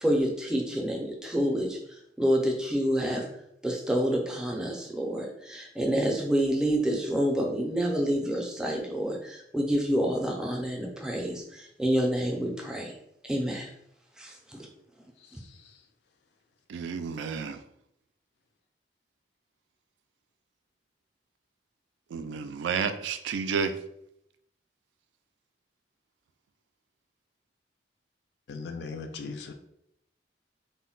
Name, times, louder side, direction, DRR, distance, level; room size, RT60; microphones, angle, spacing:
voice 1, 0.0-1.8 2.2-3.3 3.6-12.9 13.2-13.7 14.2-14.7, equal, 5° right, 0.4 m, -28 dB
voice 2, 15.2-15.8 28.5-29.5, left 4 dB, 65° left, 0.3 m, -39 dB
voice 3, 16.7-17.6 22.1-23.7, right 5 dB, 85° right, 0.3 m, -31 dB
2.1 x 2.1 x 3.7 m
head